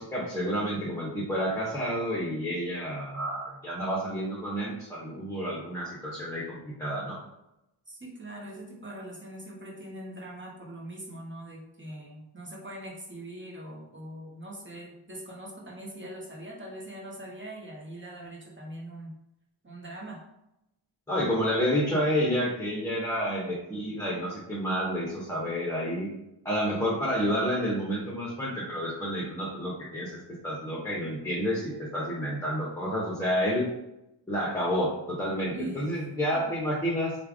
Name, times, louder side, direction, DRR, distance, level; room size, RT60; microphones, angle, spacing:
voice 1, 0.0-7.2 21.1-26.1 26.4-30.2 30.4-33.7 34.3-37.2, equal, 5° left, -7 dB, 1.1 m, -29 dB
voice 2, 7.9-19.1 19.6-20.2 35.5-36.5, right 1 dB, 25° right, -2 dB, 1.2 m, -42 dB
3.2 x 2.5 x 3.6 m, 0.87 s
cardioid pair, 40°, 49 cm